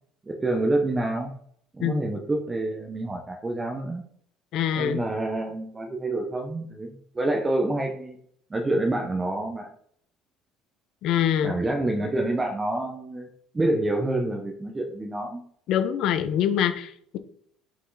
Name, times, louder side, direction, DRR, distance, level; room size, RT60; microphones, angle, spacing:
voice 1, 0.3-1.3 1.7-4.0 4.7-8.2 8.5-9.7 11.4-13.3 13.5-15.4, right 2 dB, 15° right, 2 dB, 0.8 m, -27 dB
voice 2, 4.5-5.0 11.0-11.5 15.7-17.2, left 10 dB, 55° left, 10 dB, 0.9 m, -24 dB
6.2 x 5.5 x 4.0 m, 0.64 s
cardioid pair, 150°, 0 cm